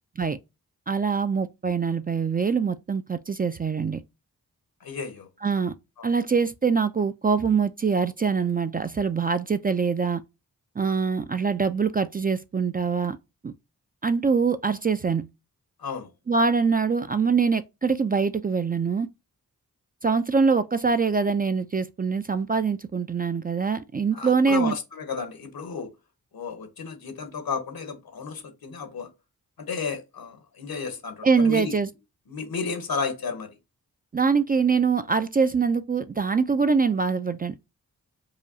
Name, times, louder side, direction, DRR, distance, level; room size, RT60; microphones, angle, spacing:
voice 1, 0.9-4.0 5.4-5.7 6.0-10.2 10.8-13.2 13.4-13.5 14.0-15.3 16.3-19.1 20.0-24.7 31.2-31.9 34.1-37.5, right 5 dB, 25° right, 0.3 m, -24 dB
voice 2, 4.8-5.3 6.0-6.1 15.8-16.1 24.1-25.9 26.3-29.1 29.6-31.8 32.3-33.6, left 5 dB, 70° left, 1.0 m, -33 dB
4.8 x 2.3 x 2.7 m
cardioid pair, 40°, 37 cm